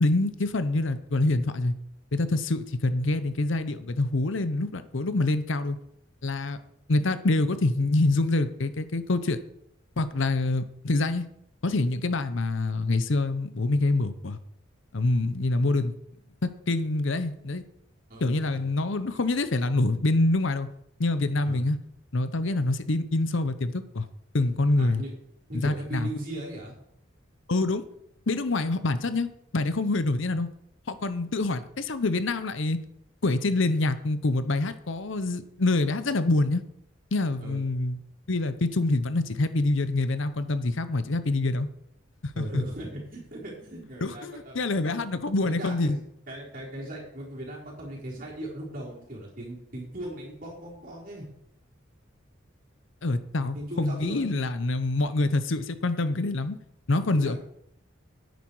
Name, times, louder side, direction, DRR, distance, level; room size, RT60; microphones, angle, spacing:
voice 1, 0.0-1.7 2.1-5.8 6.2-6.6 6.9-9.4 10.0-11.3 11.6-14.4 14.9-15.9 16.7-17.6 18.2-20.7 21.0-21.8 22.1-24.1 24.3-25.0 25.5-26.1 27.5-27.8 28.3-29.3 29.5-30.5 30.9-32.8 33.2-36.6 37.1-38.0 38.3-41.7 42.2-42.7 44.0-46.0 53.0-56.6 56.9-57.4, left 2 dB, 65° left, 12 dB, 0.8 m, -26 dB
voice 2, 18.1-18.6 21.5-21.6 24.8-25.1 25.5-26.7 37.4-37.6 42.3-44.6 44.8-45.0 45.4-46.0 46.3-51.3 53.5-54.3 57.1-57.4, right 1 dB, 40° right, -4 dB, 4.2 m, -38 dB
10.5 x 9.4 x 4.8 m, 0.73 s
head